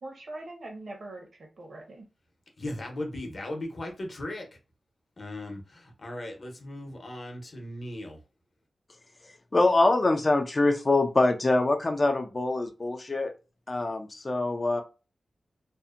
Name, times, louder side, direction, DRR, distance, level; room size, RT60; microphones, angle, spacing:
voice 1, 0.0-2.0, right 2 dB, 60° right, 0.8 m, -42 dB
voice 2, 2.6-4.5 5.2-8.2, left 1 dB, 50° left, 0.8 m, -37 dB
voice 3, 9.5-13.3 13.7-14.8, left 2 dB, 35° left, 0.4 m, -24 dB
2.6 x 2.1 x 2.4 m
wide cardioid pair, 100°, 0 cm